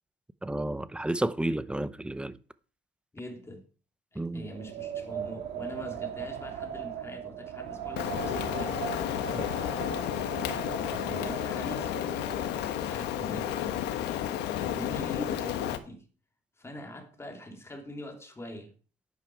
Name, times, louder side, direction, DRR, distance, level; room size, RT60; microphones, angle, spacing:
voice 1, 0.4-2.4 4.2-4.5 9.3-9.5, right 1 dB, 5° right, 0.7 m, -31 dB
voice 2, 3.1-3.6 4.1-8.8 10.8-11.9 12.8-13.9 14.6-16.0 16.6-18.7, equal, 15° left, 3.1 m, -43 dB
Wind, 4.4-12.8, right 9 dB, 85° right, 3.0 m, -39 dB
Rain, 8.0-15.8, left 11 dB, 85° left, 1.3 m, -32 dB
10.5 x 9.4 x 4.7 m
cardioid pair, 110°, 17 cm